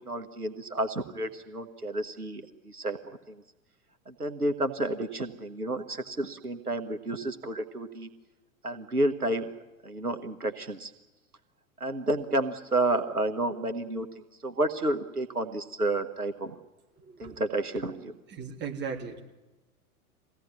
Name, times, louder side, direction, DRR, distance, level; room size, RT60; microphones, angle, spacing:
voice 1, 0.1-3.4 4.1-8.1 8.6-9.5 9.8-10.9 11.8-14.1 14.4-16.6 17.2-18.1, right 2 dB, 85° right, 8 dB, 1.4 m, -30 dB
voice 2, 17.0-17.4 18.3-19.2, right 6 dB, 25° right, 1 dB, 3.3 m, -37 dB
23.0 x 17.0 x 9.8 m, 1.1 s
figure-of-eight pair, 95°, 44 cm